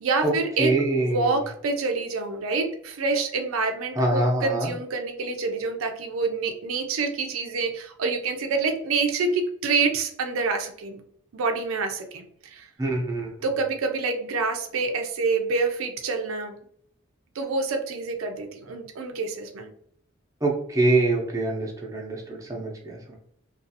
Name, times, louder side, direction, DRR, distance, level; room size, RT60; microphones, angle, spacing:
voice 1, 0.0-0.7 1.0-11.0 11.3-12.7 13.4-16.5 17.4-19.7, right 4 dB, 75° right, 5 dB, 0.4 m, -27 dB
voice 2, 0.6-1.3 4.0-4.7 12.8-13.3 20.4-23.2, right 2 dB, 15° right, -2 dB, 0.6 m, -24 dB
2.5 x 2.3 x 2.7 m, 0.65 s
head